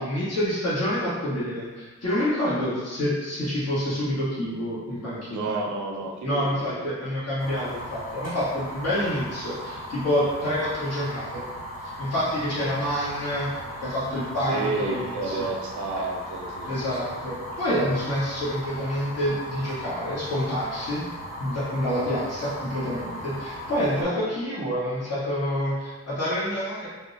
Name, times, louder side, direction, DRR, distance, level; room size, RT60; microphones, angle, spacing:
voice 1, 0.0-5.6 6.2-11.4 12.0-15.5 16.6-21.0 21.4-26.9, equal, 60° left, -10 dB, 1.3 m, -27 dB
voice 2, 5.3-6.9 8.6-8.7 14.5-17.2, right 3 dB, 85° right, 0 dB, 0.5 m, -32 dB
Fire, 7.4-24.0, equal, 30° left, 1.4 m, -37 dB
2.8 x 2.1 x 3.8 m, 1.2 s
cardioid pair, 50°, 29 cm